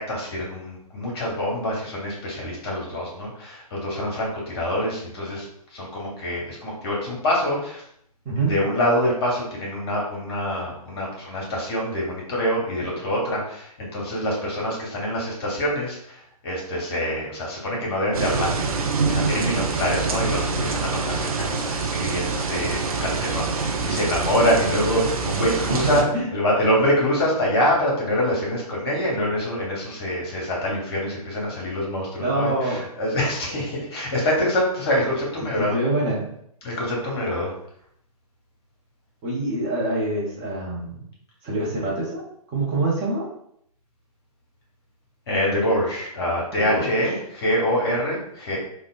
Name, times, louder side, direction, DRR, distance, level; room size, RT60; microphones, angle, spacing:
voice 1, 0.0-7.8 8.4-18.6 19.0-35.8 36.6-37.5 45.3-48.6, equal, 40° left, -3 dB, 1.1 m, -25 dB
sound 1, 18.1-26.0, right 4 dB, 65° right, 0.5 m, -25 dB
voice 2, 25.9-26.3 32.2-32.8 35.6-36.2 39.2-41.0 41.4-42.2 42.5-43.3 46.5-46.9, right 2 dB, 20° right, -6 dB, 0.8 m, -25 dB
3.5 x 2.2 x 2.4 m, 0.71 s
figure-of-eight pair, 120°, 20 cm